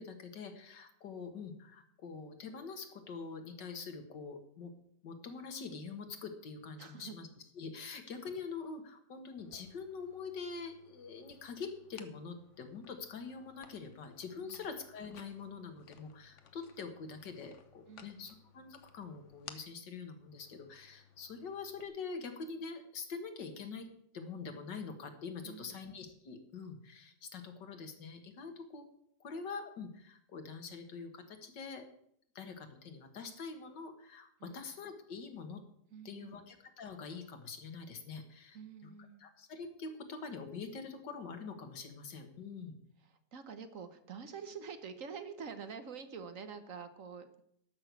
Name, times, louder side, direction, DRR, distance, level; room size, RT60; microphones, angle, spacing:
voice 1, 0.0-4.7 5.0-7.3 7.6-23.9 24.1-28.9 29.2-31.9 32.4-35.6 36.1-38.9 39.2-42.8, left 5 dB, 90° left, 6 dB, 2.2 m, -45 dB
voice 2, 6.8-7.2 14.4-14.6 17.9-18.3 25.4-25.8 34.4-34.7 35.9-36.5 38.5-39.2 43.0-47.4, right 6 dB, 55° right, 10 dB, 1.2 m, -47 dB
sound 1, 9.4-21.9, left 7 dB, 50° left, 1.1 m, -59 dB
12.5 x 6.2 x 8.2 m, 0.70 s
omnidirectional pair, 1.8 m